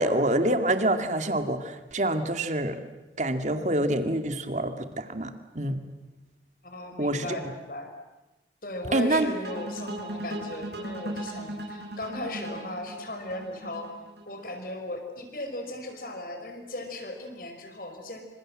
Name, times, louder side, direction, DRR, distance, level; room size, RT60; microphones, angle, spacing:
voice 1, 0.0-2.8 3.2-5.8 7.0-7.4 8.9-9.3, right 1 dB, 40° right, 8 dB, 2.2 m, -26 dB
voice 2, 6.6-7.9 8.6-13.9 14.2-18.2, left 1 dB, 50° left, 5 dB, 5.0 m, -37 dB
sound 1, 9.4-14.5, right 1 dB, 70° right, 6.7 m, -37 dB
27.0 x 26.0 x 7.7 m, 1.1 s
head